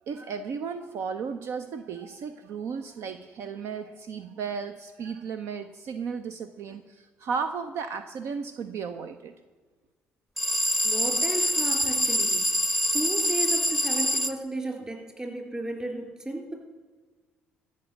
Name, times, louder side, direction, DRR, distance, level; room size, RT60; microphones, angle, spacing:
voice 1, 0.1-9.3, right 6 dB, 70° right, 9 dB, 0.6 m, -34 dB
sound 1, 10.4-14.3, equal, ahead, 0.8 m, -25 dB
voice 2, 10.8-12.4 12.9-16.5, right 1 dB, 20° right, 2 dB, 3.9 m, -34 dB
14.0 x 5.3 x 7.9 m, 1.4 s
supercardioid pair, 65°, 5 cm